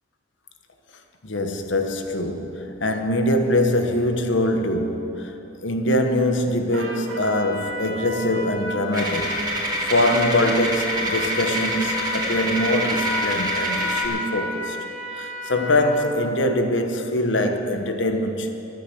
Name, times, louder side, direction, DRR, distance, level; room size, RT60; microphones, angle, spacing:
voice 1, 1.2-5.3 5.6-9.6 9.9-14.8 15.1-18.5, left 1 dB, 70° left, 5 dB, 1.2 m, -23 dB
Trumpet, 6.7-16.3, left 1 dB, 80° right, 2.3 m, -32 dB
sound 1, 8.9-14.1, right 1 dB, 20° right, 2.6 m, -27 dB
13.5 x 10.5 x 7.9 m, 2.9 s
head